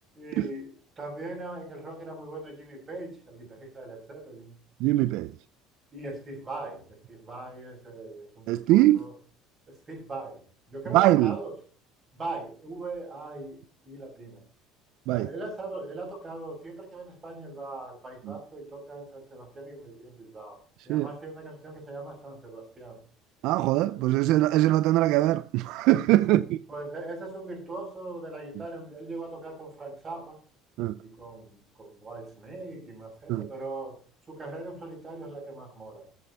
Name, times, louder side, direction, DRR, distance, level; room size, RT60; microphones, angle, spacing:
voice 1, 0.1-4.5 5.9-9.2 9.7-10.4 10.7-11.6 12.1-14.4 15.1-23.0 23.8-24.1 26.2-26.4 26.7-30.4 31.0-34.0 34.3-36.1, right 2 dB, 20° right, 6.6 m, -40 dB
voice 2, 4.8-5.3 8.5-9.0 10.9-11.4 15.1-15.3 20.9-21.1 23.4-26.4 30.8-30.9 33.3-33.4, right 16 dB, 65° right, 0.5 m, -22 dB
13.0 x 8.6 x 5.5 m
cardioid pair, 150°, 0 cm